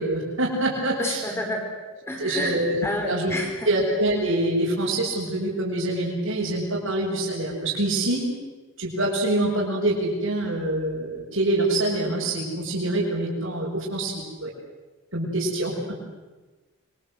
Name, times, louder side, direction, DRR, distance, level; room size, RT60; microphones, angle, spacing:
voice 1, 0.0-1.2 2.2-3.3 3.7-8.2 8.8-14.5 15.1-16.0, right 1 dB, 70° right, -6 dB, 7.0 m, -25 dB
voice 2, 1.0-1.6 2.1-2.6 2.8-3.7, equal, 10° left, 2 dB, 5.5 m, -29 dB
28.0 x 24.5 x 8.1 m, 1.2 s
head